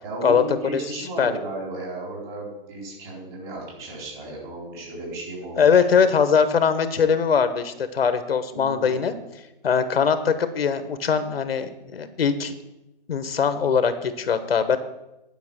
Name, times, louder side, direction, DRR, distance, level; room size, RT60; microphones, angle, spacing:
voice 1, 0.0-5.8 8.5-9.0, right 2 dB, 25° right, -4 dB, 4.3 m, -34 dB
voice 2, 5.6-9.1 9.6-12.5 13.1-14.8, left 6 dB, 85° left, 10 dB, 1.2 m, -21 dB
10.5 x 5.8 x 7.3 m, 0.95 s
hypercardioid pair, 160°, 29 cm